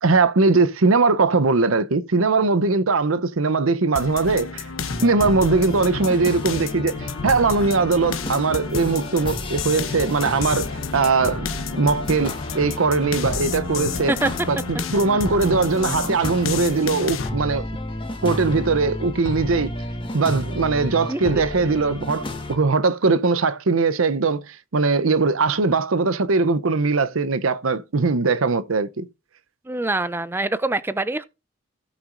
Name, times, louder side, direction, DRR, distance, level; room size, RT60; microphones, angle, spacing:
voice 1, 0.0-4.6 5.0-10.7 10.9-14.1 14.5-17.6 18.2-19.7 20.1-29.1, right 4 dB, 85° right, 0.7 m, -20 dB
sound 1, 4.0-17.3, left 5 dB, 80° left, 1.0 m, -31 dB
sound 2, 4.9-22.6, left 1 dB, 25° left, 1.5 m, -32 dB
voice 2, 21.1-21.4 29.7-31.2, right 2 dB, 10° right, 0.4 m, -24 dB
16.5 x 5.9 x 2.6 m
head